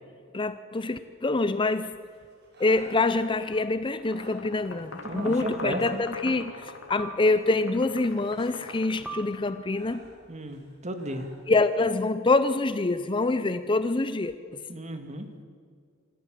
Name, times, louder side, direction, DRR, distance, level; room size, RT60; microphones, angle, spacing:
voice 1, 0.3-2.0 2.6-10.0 11.5-14.6, left 3 dB, 25° left, 12 dB, 0.6 m, -26 dB
sound 1, 1.9-2.0 3.5-3.9 5.2-5.7 7.0-7.8 9.1-10.0, right 3 dB, ahead, 1.6 m, -44 dB
Breathing, 2.0-11.5, right 1 dB, 55° right, 6.1 m, -55 dB
sound 2, 3.9-9.7, left 3 dB, 65° left, 3.0 m, -42 dB
voice 2, 5.0-6.0 10.3-11.3 14.7-15.3, right 1 dB, 35° right, 7 dB, 1.9 m, -34 dB
27.0 x 13.5 x 7.6 m, 2.1 s
head